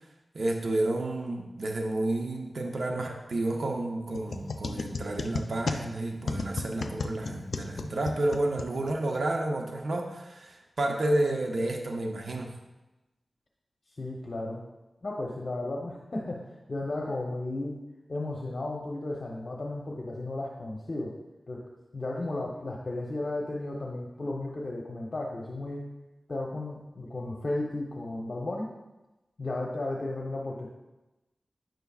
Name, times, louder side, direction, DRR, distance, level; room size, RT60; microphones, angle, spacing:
voice 1, 0.3-12.6, right 2 dB, 75° right, 2 dB, 0.7 m, -30 dB
sound 1, 4.1-9.2, left 3 dB, 85° left, 0.4 m, -35 dB
voice 2, 14.0-14.6 15.0-17.8 18.1-21.1 21.5-21.7 21.9-25.9 26.3-28.7 29.4-30.7, left 2 dB, 55° left, -2 dB, 0.8 m, -34 dB
9.2 x 6.7 x 2.3 m, 1.0 s
wide cardioid pair, 75°, 0 cm